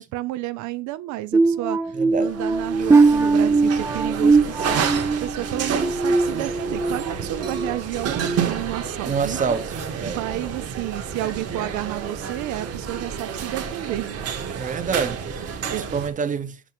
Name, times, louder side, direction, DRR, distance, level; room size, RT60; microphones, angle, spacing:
voice 1, 0.0-9.4 10.0-14.1 15.7-15.8, right 16 dB, 85° right, 0.5 m, -31 dB
sound 1, 1.3-7.0 7.4-7.7 8.2-8.4, right 3 dB, 10° right, 0.3 m, -20 dB
voice 2, 1.9-2.4 9.1-10.2 14.5-16.6, right 5 dB, 25° right, 0.8 m, -27 dB
sound 2, 2.2-16.1, right 7 dB, 55° right, 1.7 m, -30 dB
8.0 x 3.0 x 5.9 m
cardioid pair, 125°, 29 cm